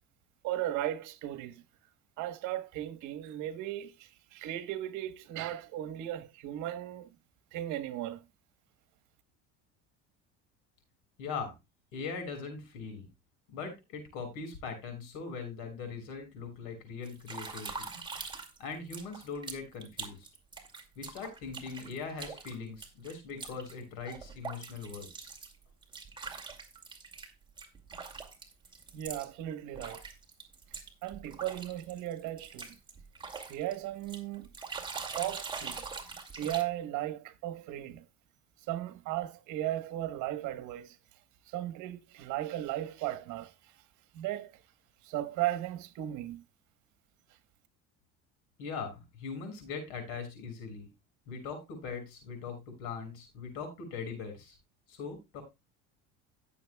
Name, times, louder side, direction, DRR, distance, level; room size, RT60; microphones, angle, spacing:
voice 1, 0.4-1.6 2.2-7.1 7.5-8.2 28.9-30.0 31.0-32.8 33.5-34.5 35.1-35.8 36.4-38.0 38.7-41.0 41.5-43.5 44.1-44.5 45.0-46.4, right 13 dB, 70° right, 1.3 m, -36 dB
voice 2, 11.2-11.5 11.9-13.1 13.5-17.9 18.6-20.3 21.0-25.3 48.6-50.9 51.3-54.6 54.9-55.4, left 5 dB, 80° left, 6.1 m, -41 dB
sound 1, 17.0-18.6 18.9-27.3 27.6-29.3 29.7-33.8 34.0-36.6, right 4 dB, 15° right, 2.4 m, -43 dB
17.0 x 7.3 x 2.3 m
cardioid pair, 120°, 31 cm